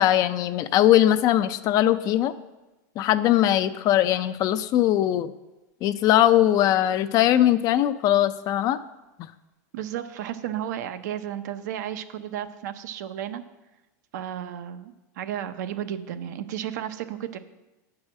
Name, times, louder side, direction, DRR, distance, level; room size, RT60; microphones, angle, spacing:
voice 1, 0.0-2.3 3.0-5.3 5.8-8.8, left 12 dB, 40° left, 12 dB, 0.4 m, -20 dB
voice 2, 9.7-13.4 14.1-17.4, right 10 dB, 75° right, 9 dB, 0.7 m, -33 dB
8.6 x 4.8 x 7.4 m, 1.1 s
supercardioid pair, 135°, 10 cm